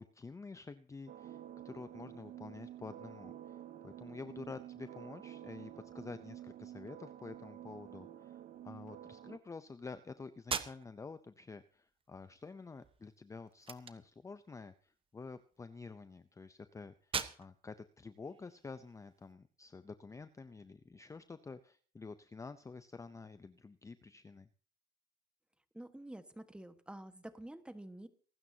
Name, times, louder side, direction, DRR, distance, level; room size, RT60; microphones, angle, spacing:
voice 1, 0.0-24.5, left 4 dB, 20° left, 12 dB, 0.6 m, -49 dB
sound 1, 1.1-9.4, right 11 dB, 55° right, 0.9 m, -50 dB
sound 2, 10.4-19.3, right 6 dB, 35° right, 1.1 m, -46 dB
voice 2, 25.7-28.1, right 1 dB, 5° right, 9 dB, 1.4 m, -49 dB
24.0 x 12.5 x 2.8 m, 0.42 s
cardioid pair, 110°, 17 cm